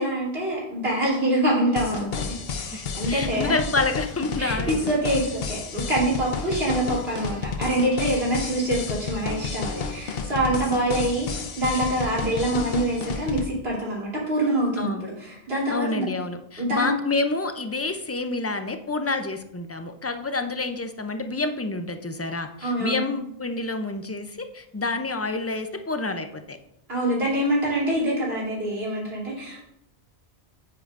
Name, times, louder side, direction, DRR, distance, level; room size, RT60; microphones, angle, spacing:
voice 1, 0.0-3.6 4.4-16.0 16.6-16.9 22.6-23.1 26.9-29.6, right 1 dB, 75° right, -6 dB, 3.5 m, -25 dB
sound 1, 1.8-13.5, left 5 dB, 70° left, 1.0 m, -31 dB
voice 2, 3.1-4.8 14.8-15.0 15.7-26.6, left 3 dB, 25° left, 7 dB, 0.3 m, -28 dB
9.0 x 8.6 x 2.5 m, 0.77 s
omnidirectional pair, 1.0 m